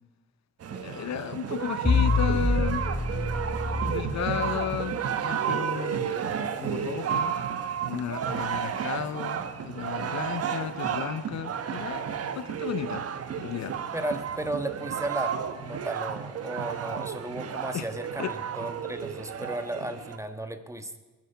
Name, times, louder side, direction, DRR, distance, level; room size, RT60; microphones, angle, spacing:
sound 1, 0.6-20.2, right 8 dB, 50° right, 1.2 m, -32 dB
voice 1, 0.7-2.9 3.8-6.1 6.4-7.3 7.8-12.1 12.3-13.0 13.4-13.8 17.7-17.8 18.2-18.3, left 9 dB, 65° left, 0.8 m, -33 dB
sound 2, 1.8-4.9, left 2 dB, 10° left, 2.1 m, -27 dB
voice 2, 13.9-21.0, right 1 dB, 10° right, 1.4 m, -34 dB
20.5 x 9.3 x 5.8 m
cardioid pair, 90°, 30 cm